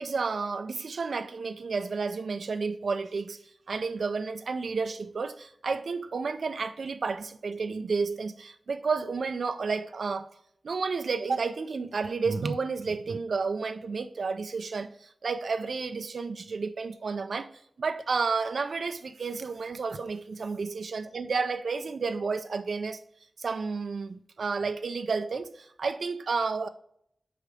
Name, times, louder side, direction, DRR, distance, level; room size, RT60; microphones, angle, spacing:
voice 1, 0.0-3.4 3.7-10.3 10.6-17.5 17.8-23.0 23.4-26.7, right 4 dB, 80° right, 0.3 m, -31 dB
4.9 x 4.6 x 5.1 m
wide cardioid pair, 70°, 0 cm